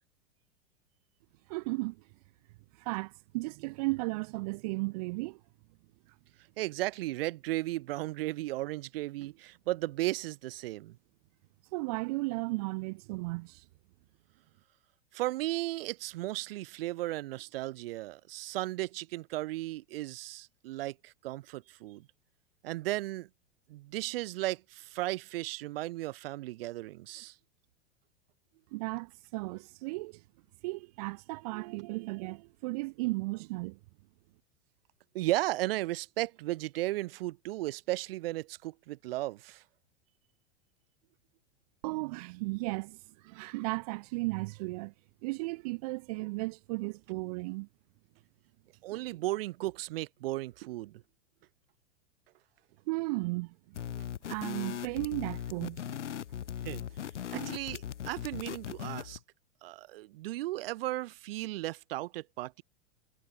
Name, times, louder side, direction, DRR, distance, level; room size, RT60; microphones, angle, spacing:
voice 1, 1.5-2.0 2.8-5.4 11.7-13.6 28.7-30.2 30.6-33.8 41.8-43.0 43.2-44.9 45.2-47.7 52.9-54.0 54.3-56.0 57.3-57.6, right 25 dB, 35° right, 0.4 m, -35 dB
voice 2, 6.6-11.0 15.1-22.1 22.6-23.3 23.7-27.3 35.1-39.6 48.8-51.0 56.6-56.9 57.3-59.2 59.6-62.6, right 17 dB, 55° right, 0.8 m, -35 dB
sound 1, 53.7-59.2, left 10 dB, 80° left, 0.6 m, -39 dB
figure-of-eight pair, 95°, 35 cm